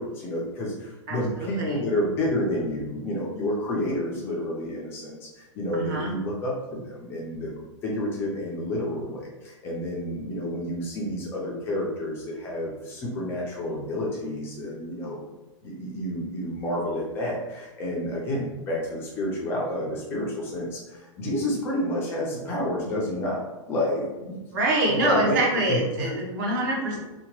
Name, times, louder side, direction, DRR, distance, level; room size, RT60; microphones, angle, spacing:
voice 1, 0.0-7.5 7.8-15.3 15.6-24.4 24.9-26.2, left 1 dB, 15° left, -3 dB, 0.3 m, -30 dB
voice 2, 1.1-1.8 5.7-6.1 24.5-27.0, right 1 dB, 40° right, -2 dB, 0.7 m, -25 dB
2.8 x 2.1 x 2.8 m, 1.1 s
supercardioid pair, 170°, 16 cm